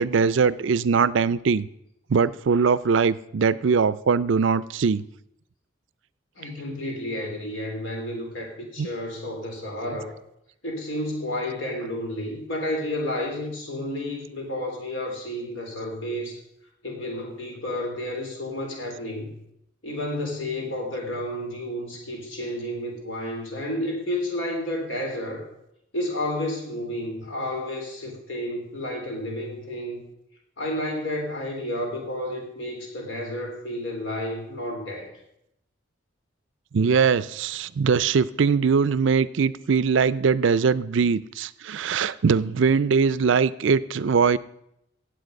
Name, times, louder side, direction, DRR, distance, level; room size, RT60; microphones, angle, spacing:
voice 1, 0.0-1.7 2.1-5.0 8.8-8.9 36.7-44.4, right 5 dB, 65° right, 18 dB, 0.4 m, -21 dB
voice 2, 6.4-10.1 10.6-16.4 16.8-19.4 19.8-25.5 25.9-30.0 30.6-35.1, left 1 dB, 70° left, 2 dB, 3.5 m, -31 dB
16.5 x 8.2 x 5.2 m, 0.78 s
head